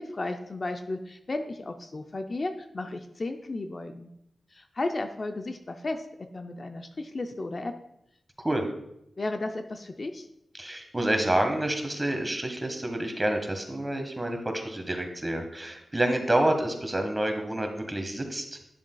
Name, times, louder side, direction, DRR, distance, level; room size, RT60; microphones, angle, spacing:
voice 1, 0.0-4.1 4.5-6.0 6.3-7.7 9.2-10.3, left 2 dB, 45° left, 6 dB, 0.5 m, -34 dB
voice 2, 10.5-18.5, right 1 dB, 20° right, 5 dB, 1.4 m, -28 dB
10.0 x 7.2 x 2.3 m, 0.80 s
cardioid pair, 70°, 0 cm